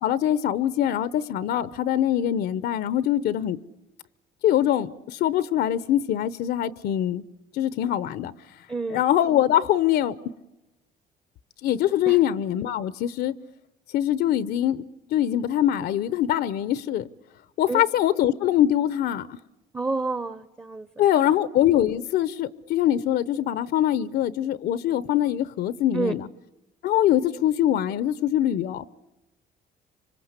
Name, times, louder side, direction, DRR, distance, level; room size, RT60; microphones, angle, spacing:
voice 1, 0.0-3.6 4.4-7.2 7.5-8.3 8.9-10.2 11.6-13.3 13.9-14.8 15.1-17.1 17.6-19.4 21.0-26.3 26.8-28.9, left 11 dB, 70° left, 0.8 m, -23 dB
voice 2, 8.7-9.0 12.1-12.2 17.7-17.8 19.7-20.9 25.9-26.1, right 3 dB, 15° right, 0.9 m, -28 dB
25.5 x 25.0 x 8.2 m
cardioid pair, 110°, 17 cm